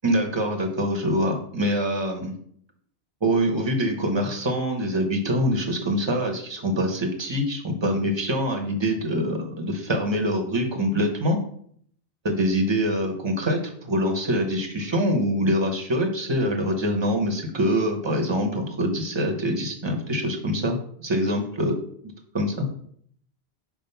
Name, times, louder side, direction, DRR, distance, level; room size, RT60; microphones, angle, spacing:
voice 1, 0.0-2.4 3.2-11.4 12.2-21.8 22.3-22.7, equal, 25° right, 3 dB, 0.9 m, -24 dB
4.9 x 3.6 x 5.5 m, 0.64 s
omnidirectional pair, 1.1 m